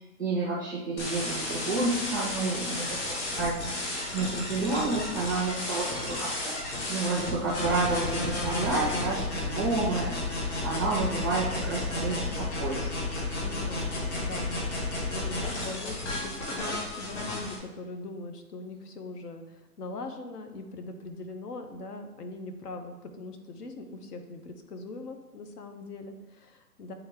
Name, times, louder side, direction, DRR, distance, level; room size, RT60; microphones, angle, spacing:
voice 1, 0.0-6.5 6.9-12.9, right 3 dB, 15° right, -4 dB, 0.4 m, -30 dB
sound 1, 1.0-17.6, left 2 dB, 45° left, 1.7 m, -33 dB
voice 2, 13.4-26.9, left 2 dB, 70° left, 6 dB, 1.1 m, -41 dB
8.5 x 3.5 x 3.5 m, 1.1 s
hypercardioid pair, 155°, 49 cm